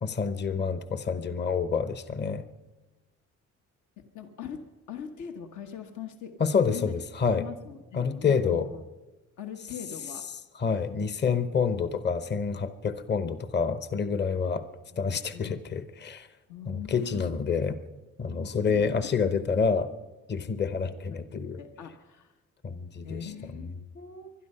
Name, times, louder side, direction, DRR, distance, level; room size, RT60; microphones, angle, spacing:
voice 1, 0.0-2.4 6.4-7.4 7.9-8.7 10.6-14.6 15.0-16.3 16.7-17.8 18.2-19.9 20.3-21.6 22.6-23.6, left 5 dB, 35° left, 12 dB, 0.9 m, -28 dB
voice 2, 4.0-4.6 4.9-6.3 6.6-7.0 7.3-8.8 9.4-10.2 11.4-11.5 14.9-15.6 16.5-17.4 18.7-18.9 21.1-22.3 23.0-24.3, left 8 dB, 75° left, 6 dB, 1.3 m, -42 dB
21.0 x 12.0 x 5.6 m, 1.1 s
cardioid pair, 90°, 30 cm